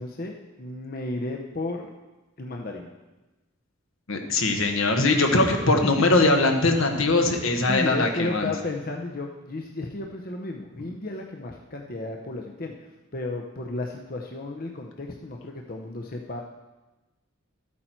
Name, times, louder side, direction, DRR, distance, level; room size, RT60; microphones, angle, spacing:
voice 1, 0.0-1.9 2.4-2.9 7.7-12.7 13.1-16.4, left 2 dB, 45° left, 1 dB, 0.8 m, -33 dB
voice 2, 4.1-8.5, left 2 dB, 75° left, 4 dB, 1.3 m, -21 dB
13.0 x 8.5 x 4.5 m, 1.1 s
head